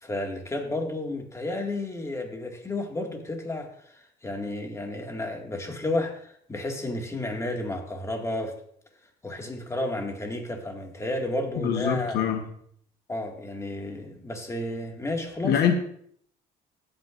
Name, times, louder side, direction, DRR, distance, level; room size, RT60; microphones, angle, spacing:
voice 1, 0.0-8.5 9.2-12.2 13.1-15.6, left 2 dB, 15° left, 2 dB, 2.0 m, -32 dB
voice 2, 11.6-12.5 15.4-15.7, left 8 dB, 75° left, 6 dB, 1.1 m, -24 dB
16.5 x 8.9 x 2.5 m, 0.65 s
cardioid pair, 110°, 17 cm